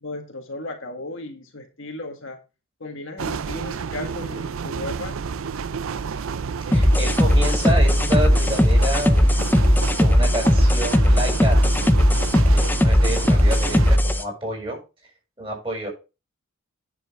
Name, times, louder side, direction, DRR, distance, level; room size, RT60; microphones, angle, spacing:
voice 1, 0.0-2.4 2.8-5.5, left 2 dB, 60° left, 1.7 m, -35 dB
sound 1, 3.2-14.0, right 6 dB, 65° right, 0.5 m, -31 dB
sound 2, 6.7-14.2, equal, 10° left, 0.5 m, -17 dB
voice 2, 6.7-9.3 9.9-11.8 12.5-14.8 15.4-15.9, right 1 dB, 25° right, 6.7 m, -29 dB
9.9 x 7.3 x 3.7 m
head